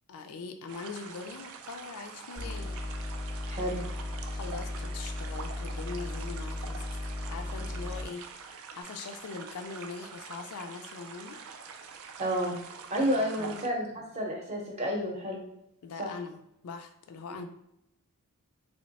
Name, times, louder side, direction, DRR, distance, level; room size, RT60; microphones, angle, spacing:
voice 1, 0.1-2.8 4.3-7.0 7.3-11.4 13.0-13.6 15.8-17.4, left 4 dB, 75° left, 7 dB, 0.4 m, -42 dB
sound 1, 0.7-13.7, right 6 dB, 65° right, 0.4 m, -45 dB
sound 2, 2.4-8.1, left 1 dB, 20° left, 0.5 m, -36 dB
voice 2, 3.5-3.8 12.2-12.6 12.9-15.4 16.0-16.1 17.3-17.4, equal, 30° right, 0 dB, 0.8 m, -31 dB
3.0 x 2.1 x 4.0 m, 0.82 s
head